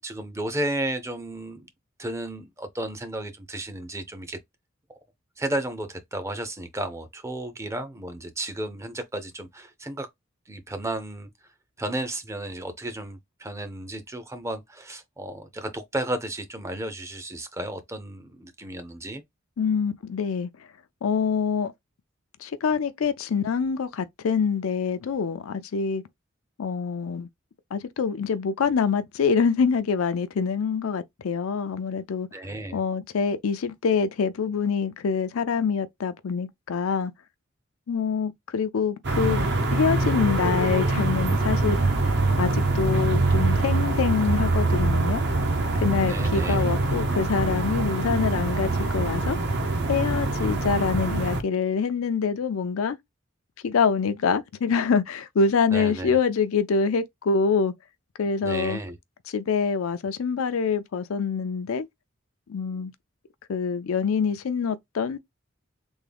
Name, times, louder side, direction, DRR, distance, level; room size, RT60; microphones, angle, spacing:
voice 1, 0.0-1.7 2.0-4.4 5.4-10.1 10.5-11.3 11.8-19.2 32.3-32.8 46.0-46.7 55.7-56.2 58.4-59.0, right 1 dB, 15° right, 0.5 m, -33 dB
voice 2, 19.6-20.5 21.0-21.7 22.4-26.0 26.6-27.3 27.7-32.3 32.7-37.1 37.9-41.8 42.0-45.2 45.7-49.4 49.9-53.0 53.6-57.7 58.2-58.8 59.3-61.9 62.5-62.9 63.5-65.2, left 5 dB, 85° left, 0.4 m, -25 dB
sound 1, 39.0-51.4, right 2 dB, 55° right, 0.7 m, -24 dB
3.6 x 2.1 x 3.3 m
head